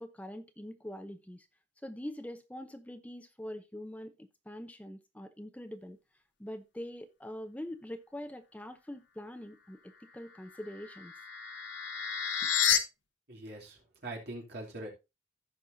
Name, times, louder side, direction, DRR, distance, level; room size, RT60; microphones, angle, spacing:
voice 1, 0.0-1.5 1.8-6.0 6.4-11.1, left 1 dB, 10° left, 0.7 m, -44 dB
sound 1, 10.5-12.8, left 8 dB, 70° left, 0.9 m, -31 dB
voice 2, 13.3-14.9, right 1 dB, 60° right, 3.0 m, -42 dB
15.5 x 5.5 x 2.6 m
head